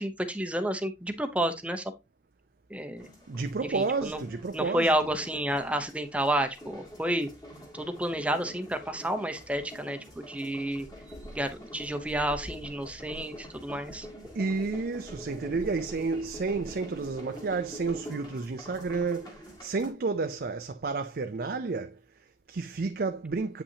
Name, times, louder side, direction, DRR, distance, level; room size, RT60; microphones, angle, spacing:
voice 1, 0.0-1.9 2.7-3.1 3.7-4.2 4.5-7.3 7.7-10.9 11.3-14.1, right 1 dB, 10° right, 0.8 m, -30 dB
sound 1, 3.0-19.9, equal, 25° left, 2.2 m, -46 dB
voice 2, 3.3-4.9 14.3-23.6, right 4 dB, 55° right, 0.5 m, -31 dB
8.4 x 5.6 x 2.8 m
head